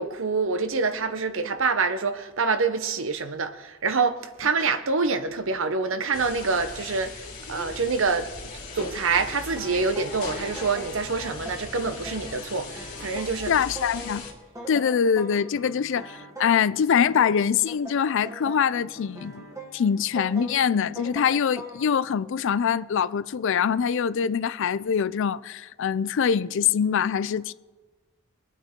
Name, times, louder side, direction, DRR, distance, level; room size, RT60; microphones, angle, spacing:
voice 1, 0.0-7.1 7.5-13.5, right 4 dB, 65° right, 0.9 m, -26 dB
sound 1, 6.1-14.3, left 3 dB, 40° left, 2.8 m, -39 dB
sound 2, 9.2-22.0, right 1 dB, 15° right, 1.5 m, -42 dB
voice 2, 13.5-14.2 14.7-19.4 19.7-27.5, left 7 dB, 65° left, 0.4 m, -24 dB
23.0 x 9.2 x 3.7 m
head